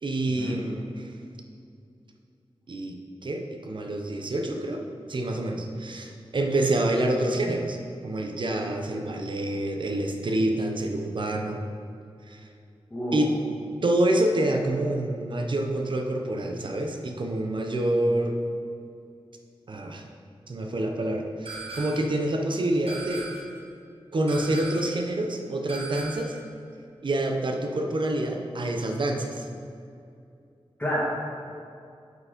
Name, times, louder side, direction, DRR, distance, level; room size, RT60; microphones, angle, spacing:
voice 1, 0.0-1.1 2.7-4.8 5.1-7.8 8.0-11.6 12.3-12.5 13.1-13.3 13.8-18.3 19.7-20.0 20.5-23.3 24.1-26.4 27.0-29.5, right 1 dB, 55° right, 2 dB, 0.8 m, -27 dB
voice 2, 12.9-13.2 30.8-31.0, equal, 15° left, -9 dB, 1.9 m, -28 dB
sound 1, 21.5-22.2 22.9-23.6 24.3-25.0 25.7-26.4, right 2 dB, 75° right, 1.4 m, -38 dB
7.9 x 5.0 x 5.2 m, 2.5 s
wide cardioid pair, 115°, 10 cm